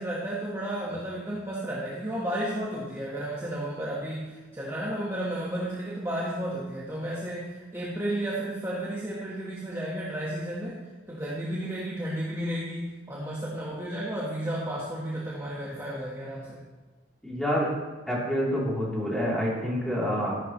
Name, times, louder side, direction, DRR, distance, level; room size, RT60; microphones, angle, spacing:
voice 1, 0.0-10.8 11.1-16.6, right 1 dB, 15° right, -5 dB, 1.4 m, -33 dB
voice 2, 17.2-17.7 18.1-20.3, equal, 5° left, -6 dB, 3.3 m, -27 dB
13.5 x 11.5 x 3.2 m, 1.3 s
head